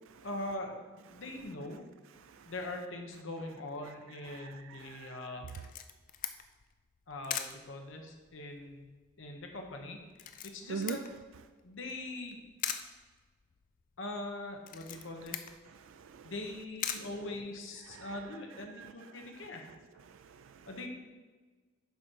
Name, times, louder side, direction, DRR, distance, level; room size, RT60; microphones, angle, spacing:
voice 1, 0.2-1.8 2.4-5.5 7.1-8.8 9.2-10.0 10.4-11.0 11.6-12.4 14.0-15.4 16.2-19.7 20.7-20.9, left 2 dB, 60° left, 2 dB, 1.0 m, -42 dB
voice 2, 2.2-2.5 4.3-5.3 10.7-11.0 15.7-16.3 17.9-18.1 18.8-19.3 20.1-20.7, right 6 dB, 65° right, 9 dB, 0.3 m, -44 dB
Camera, 5.5-18.0, left 9 dB, 40° left, 0.3 m, -44 dB
7.1 x 5.1 x 4.6 m, 1.3 s
head